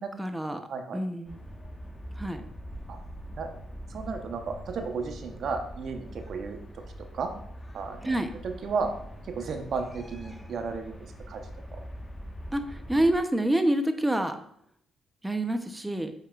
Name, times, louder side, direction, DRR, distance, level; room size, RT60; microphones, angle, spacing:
voice 1, 0.2-0.7 0.9-1.4 2.2-2.4 8.0-8.3 12.5-14.4 15.2-16.1, right 1 dB, 10° right, 7 dB, 0.7 m, -27 dB
voice 2, 0.7-1.0 2.9-3.0 3.4-3.5 3.9-6.6 7.1-7.3 7.7-8.9 9.3-11.4 11.7-11.8, right 5 dB, 65° right, 5 dB, 0.9 m, -34 dB
sound 1, 1.3-13.2, equal, 25° left, 1.2 m, -43 dB
8.4 x 5.8 x 2.4 m, 0.68 s
hypercardioid pair, 50°, 0 cm